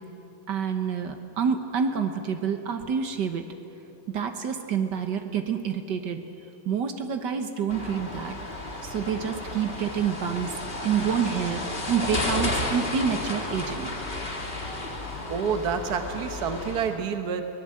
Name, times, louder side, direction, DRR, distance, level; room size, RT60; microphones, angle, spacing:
voice 1, 0.5-3.4 4.1-6.2 6.6-8.4 8.8-10.5 10.8-13.9, right 7 dB, 60° right, 6 dB, 1.2 m, -28 dB
sound 1, 7.7-16.9, left 2 dB, 20° left, 2.0 m, -33 dB
voice 2, 15.3-17.4, right 6 dB, 80° right, 7 dB, 0.8 m, -28 dB
23.5 x 19.0 x 7.7 m, 2.9 s
omnidirectional pair, 3.4 m